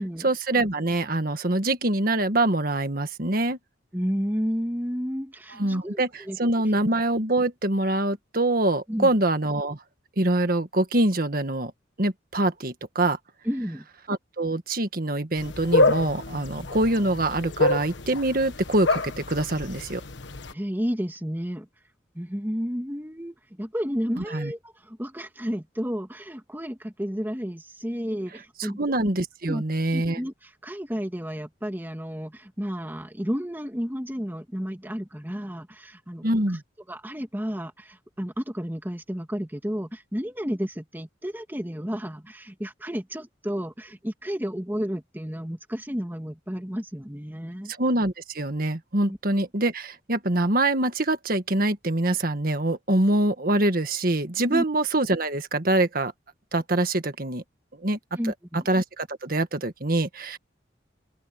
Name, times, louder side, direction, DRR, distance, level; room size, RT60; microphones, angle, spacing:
voice 1, 0.2-3.6 5.5-9.8 10.2-11.7 12.0-13.2 14.1-20.0 24.2-24.5 28.6-30.2 36.2-36.6 47.8-56.1 56.5-57.4 57.8-58.0 58.5-60.4, right 2 dB, 50° right, 1.7 m, -24 dB
voice 2, 3.9-6.4 8.9-9.1 13.5-13.9 20.5-21.7 22.1-29.0 29.4-29.6 29.9-30.3 30.6-36.3 36.9-47.7 49.1-49.2 54.5-54.6 58.2-58.7, equal, 10° right, 2.1 m, -32 dB
sound 1, 15.4-20.5, left 2 dB, 75° left, 1.3 m, -27 dB
open air
head